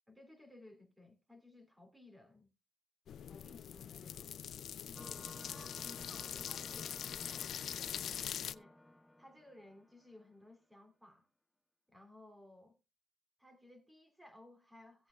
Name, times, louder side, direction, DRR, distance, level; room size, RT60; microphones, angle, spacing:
voice 1, 0.1-2.5 3.3-4.3 4.8-8.8 9.2-11.3 11.9-12.8 13.4-15.1, left 1 dB, 10° right, 2.8 m, -59 dB
sound 1, 3.1-8.5, left 9 dB, 65° left, 0.4 m, -43 dB
sound 2, 5.0-10.2, left 1 dB, 10° left, 0.6 m, -55 dB
17.0 x 7.8 x 2.3 m
cardioid pair, 90°, 0 cm